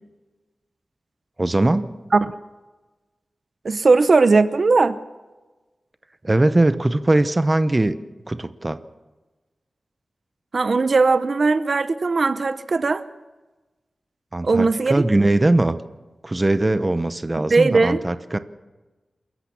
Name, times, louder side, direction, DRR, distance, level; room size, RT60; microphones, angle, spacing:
voice 1, 1.4-1.9 6.2-8.0 8.3-8.8 14.3-15.8 16.2-18.4, right 2 dB, 25° right, 12 dB, 0.9 m, -20 dB
voice 2, 3.6-5.0 10.5-13.0 14.4-15.0 17.5-18.0, right 3 dB, 55° right, 13 dB, 0.8 m, -18 dB
27.5 x 14.5 x 7.2 m, 1.2 s
wide cardioid pair, 110°, 0 cm